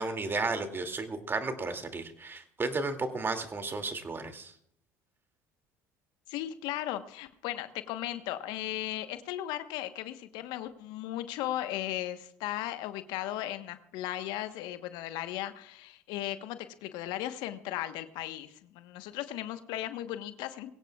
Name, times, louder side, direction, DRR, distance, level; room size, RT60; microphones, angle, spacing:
voice 1, 0.0-4.5, right 3 dB, 30° right, 7 dB, 2.4 m, -33 dB
voice 2, 6.3-20.7, left 13 dB, 70° left, 10 dB, 1.1 m, -36 dB
22.0 x 17.0 x 2.4 m, 0.68 s
hypercardioid pair, 65°, 8 cm